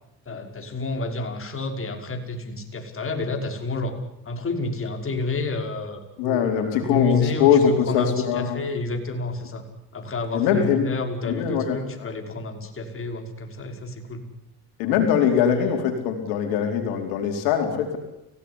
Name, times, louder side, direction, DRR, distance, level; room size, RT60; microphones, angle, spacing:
voice 1, 0.3-4.0 4.3-9.6 9.9-14.2, left 3 dB, 35° left, 4 dB, 5.7 m, -30 dB
voice 2, 6.2-8.6 10.3-10.9 11.2-12.1 14.8-18.0, left 8 dB, 85° left, 4 dB, 4.4 m, -22 dB
30.0 x 17.5 x 10.0 m, 0.85 s
supercardioid pair, 80°, 37 cm